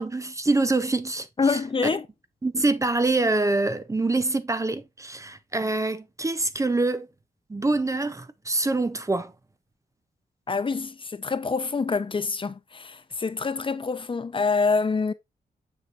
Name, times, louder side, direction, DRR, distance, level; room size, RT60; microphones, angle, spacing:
voice 1, 0.0-1.6 2.4-7.1 7.5-9.3, right 2 dB, 20° right, 0.6 m, -25 dB
voice 2, 1.4-2.1 10.5-15.1, left 4 dB, 35° left, 0.7 m, -26 dB
6.7 x 5.9 x 2.5 m
cardioid pair, 95°, 16 cm